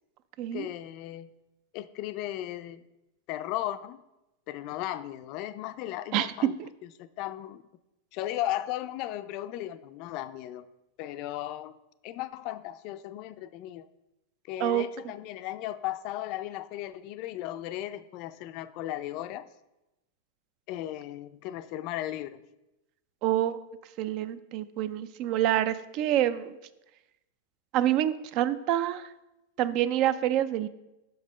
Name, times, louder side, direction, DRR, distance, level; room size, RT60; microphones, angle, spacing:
voice 1, 0.5-1.3 1.7-2.8 3.3-4.0 4.5-6.5 7.0-7.6 8.1-10.7 11.0-11.8 12.0-13.9 14.5-19.5 20.7-22.4, left 13 dB, 45° left, 13 dB, 0.4 m, -36 dB
voice 2, 23.2-23.6 24.0-26.6 27.7-29.0 29.6-30.7, right 12 dB, 45° right, 15 dB, 0.4 m, -27 dB
5.9 x 5.4 x 4.9 m, 0.95 s
supercardioid pair, 135°, 0 cm